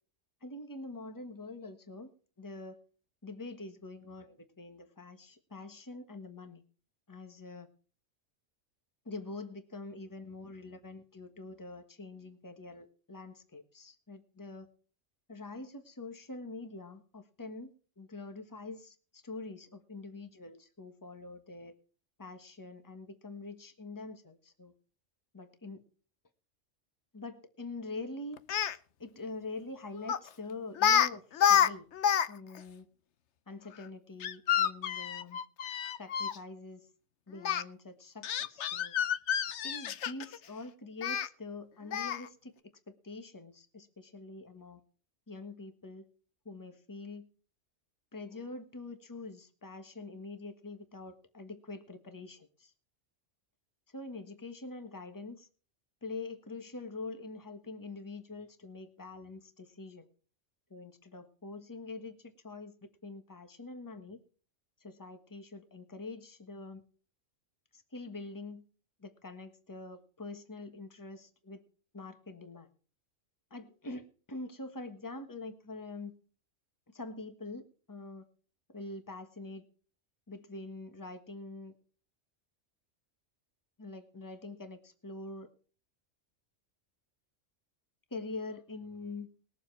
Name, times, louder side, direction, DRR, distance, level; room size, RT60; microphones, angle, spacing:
voice 1, 0.4-2.1 2.4-2.8 3.2-6.6 7.1-7.7 9.0-14.7 15.3-21.7 22.2-24.7 25.3-25.8 27.1-28.4 29.0-31.9 32.3-32.9 33.5-35.4 36.0-36.9 37.3-38.9 39.6-42.5 42.9-44.8 45.3-46.1 46.4-47.3 48.1-52.7 53.9-55.5 56.0-60.1 60.7-62.8 63.0-64.2 64.8-66.8 67.7-68.6 69.0-71.6 71.9-72.7 73.5-76.1 76.9-78.3 78.7-79.6 80.3-81.7 83.8-85.5 88.1-89.3, left 3 dB, 15° left, 8 dB, 1.3 m, -45 dB
Speech, 28.4-28.8 30.1-30.3 30.8-31.1 31.3-32.3 32.6-32.7 34.2-36.4 37.4-37.6 38.2-40.4 41.0-41.3 41.9-42.3, left 9 dB, 70° left, 1.0 m, -28 dB
21.0 x 7.1 x 4.6 m, 0.40 s
omnidirectional pair, 1.3 m